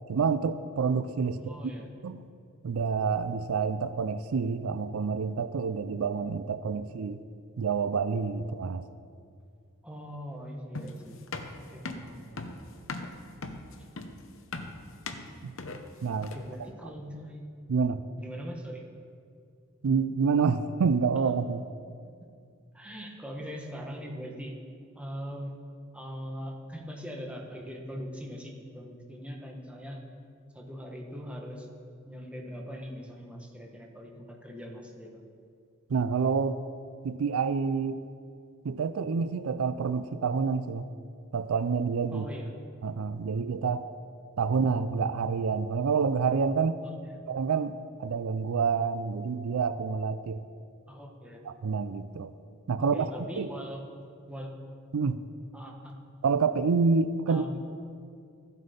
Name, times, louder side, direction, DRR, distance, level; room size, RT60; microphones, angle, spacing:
voice 1, 0.1-1.5 2.0-2.2 2.6-7.2 7.6-8.8 15.4-15.6 16.0-16.3 17.7-18.0 19.8-21.6 35.9-36.6 37.0-38.0 38.6-40.9 41.3-42.3 42.8-43.9 44.4-46.8 47.3-50.4 51.4-52.3 52.7-53.1 53.4-53.5 54.9-55.2 56.2-57.5, right 5 dB, 80° right, 12 dB, 0.4 m, -28 dB
voice 2, 1.3-1.9 9.8-11.2 11.7-12.7 16.2-17.4 18.2-18.8 22.7-24.6 24.9-25.6 25.9-30.0 30.5-31.7 32.0-35.3 42.1-42.5 44.5-44.7 47.1-47.2 50.9-51.4 52.8-53.8 54.3-54.6 55.5-56.0 57.3-57.5, equal, 5° right, 0 dB, 1.4 m, -41 dB
sound 1, 10.7-16.6, left 3 dB, 65° left, 0.9 m, -39 dB
14.5 x 7.7 x 5.2 m, 2.3 s
head